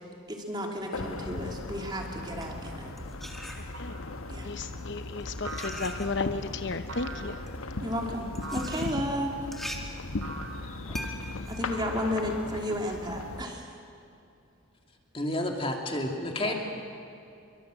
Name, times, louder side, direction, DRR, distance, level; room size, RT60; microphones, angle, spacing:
voice 1, 0.3-2.9 4.3-4.5 7.8-9.3 11.5-13.7 16.4-16.5, equal, 20° right, 1 dB, 2.9 m, -33 dB
sound 1, 0.9-13.4, left 2 dB, 85° left, 1.3 m, -38 dB
sound 2, 2.2-4.1 4.9-12.8, equal, ahead, 2.0 m, -44 dB
sound 3, 3.7-4.2 5.4-6.2 6.9-7.5 8.4-9.0 10.2-10.7 11.7-12.5, right 3 dB, 85° right, 2.5 m, -42 dB
voice 2, 4.4-7.3, left 3 dB, 55° left, 9 dB, 0.8 m, -34 dB
voice 3, 15.1-16.5, left 1 dB, 25° left, 2 dB, 2.6 m, -30 dB
27.5 x 23.0 x 7.8 m, 2.5 s
head